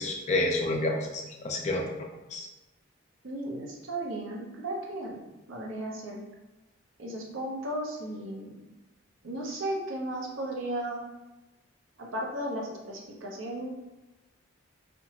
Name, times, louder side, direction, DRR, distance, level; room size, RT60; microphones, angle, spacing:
voice 1, 0.0-1.9 2.3-2.5, left 2 dB, 35° left, 1 dB, 0.3 m, -29 dB
voice 2, 3.2-5.2 5.5-6.2 7.0-8.5 9.2-11.0 12.0-13.7, right 1 dB, 75° right, -1 dB, 0.6 m, -35 dB
2.8 x 2.2 x 2.8 m, 1.1 s
head